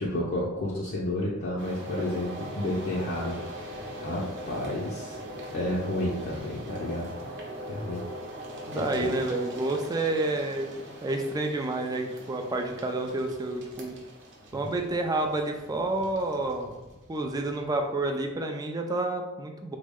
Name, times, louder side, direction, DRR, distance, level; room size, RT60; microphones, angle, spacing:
voice 1, 0.0-3.4 4.0-5.2 5.5-7.1 7.7-8.0 8.7-9.1, left 1 dB, 50° left, -5 dB, 0.5 m, -31 dB
sound 1, 1.6-18.4, equal, 60° right, 0.7 m, -41 dB
voice 2, 8.7-10.7 11.0-13.9 14.5-16.8 17.1-19.8, right 2 dB, 20° right, 4 dB, 0.3 m, -29 dB
3.5 x 2.1 x 3.5 m, 1.1 s
head